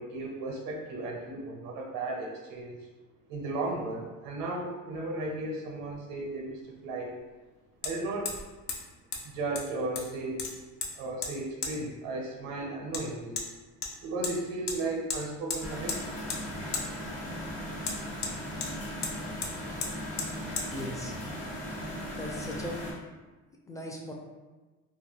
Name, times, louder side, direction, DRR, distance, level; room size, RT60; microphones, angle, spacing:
voice 1, 0.0-2.9 3.3-7.1 7.8-8.3 9.2-10.5 10.9-13.4 14.0-16.2, right 2 dB, 80° right, 0 dB, 0.6 m, -35 dB
Hammer, 5.9-6.0 7.8-7.9 8.3-8.4 8.7-8.8 9.1-9.2 9.6-10.1 10.4-10.9 11.2-11.3 11.6-11.7 12.9-13.0 13.4-13.5 13.8-14.4 14.7-14.8 15.1-15.2 15.5-16.0 16.3-16.4 16.7-16.9 17.8-18.7 19.0-19.2 19.4-19.5 19.8-19.9 20.2-20.3 20.6-20.7, left 4 dB, 55° left, 0.6 m, -34 dB
sound 1, 15.6-22.9, equal, 75° left, 1.2 m, -38 dB
voice 2, 20.7-21.1 22.1-22.8 23.7-24.1, left 1 dB, 10° left, -1 dB, 0.4 m, -38 dB
2.3 x 2.1 x 3.3 m, 1.2 s
cardioid pair, 105°, 32 cm